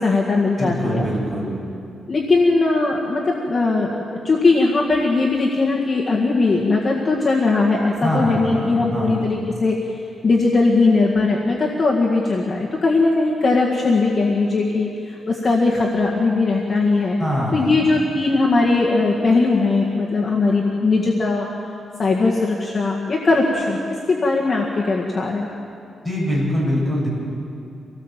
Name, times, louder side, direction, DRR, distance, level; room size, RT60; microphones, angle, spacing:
voice 1, 0.0-1.0 2.1-17.2 17.5-21.5 22.0-23.8 24.1-25.5, left 3 dB, 30° left, -3 dB, 1.9 m, -19 dB
voice 2, 0.6-1.5 8.0-9.2 17.2-17.8 26.0-27.1, equal, ahead, -6 dB, 7.9 m, -23 dB
25.5 x 18.5 x 7.6 m, 2.6 s
wide cardioid pair, 160°, 0 cm